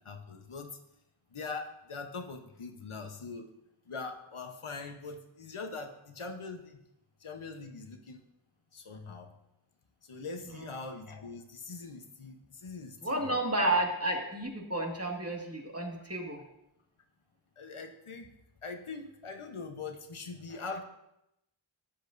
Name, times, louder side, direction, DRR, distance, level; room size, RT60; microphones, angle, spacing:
voice 1, 0.0-0.8 1.3-3.5 3.9-6.8 7.2-8.2 8.7-9.3 10.0-13.4 17.6-18.3 18.6-20.8, left 4 dB, 80° left, 5 dB, 1.0 m, -42 dB
voice 2, 13.0-16.4, right 1 dB, 30° right, -1 dB, 1.9 m, -31 dB
13.0 x 8.9 x 2.6 m, 0.85 s
wide cardioid pair, 45°, 49 cm